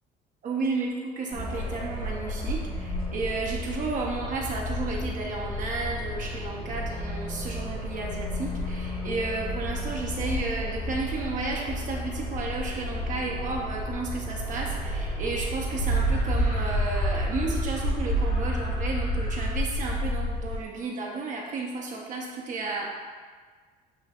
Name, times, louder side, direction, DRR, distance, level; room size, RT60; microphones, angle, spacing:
voice 1, 0.4-22.9, right 3 dB, 50° right, -1 dB, 0.7 m, -32 dB
sound 1, 1.3-20.6, equal, 30° left, 1.1 m, -30 dB
7.6 x 2.6 x 2.4 m, 1.5 s
cardioid pair, 110°, 17 cm